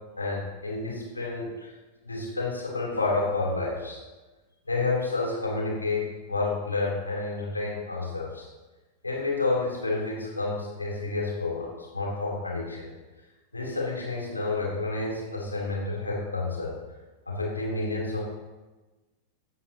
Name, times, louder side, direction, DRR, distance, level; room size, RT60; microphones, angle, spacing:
voice 1, 0.2-1.7 2.0-4.0 4.7-8.5 9.0-12.9 13.5-16.7 17.2-18.3, left 3 dB, 80° left, -3 dB, 3.3 m, -30 dB
15.5 x 9.7 x 2.9 m, 1.2 s
figure-of-eight pair, 90°, 0 cm